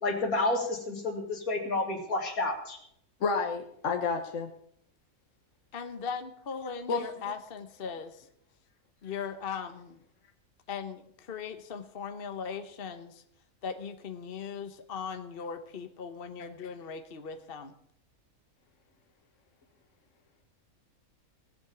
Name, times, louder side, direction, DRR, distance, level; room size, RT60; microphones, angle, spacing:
voice 1, 0.0-2.8, left 2 dB, 80° left, 3 dB, 2.9 m, -30 dB
voice 2, 3.2-4.5 6.9-7.3, left 4 dB, 60° left, 5 dB, 1.5 m, -30 dB
voice 3, 5.7-8.3 9.0-10.0 10.7-13.2 13.6-17.7, left 6 dB, 45° left, 8 dB, 1.2 m, -39 dB
18.0 x 7.8 x 7.1 m, 0.70 s
omnidirectional pair, 1.5 m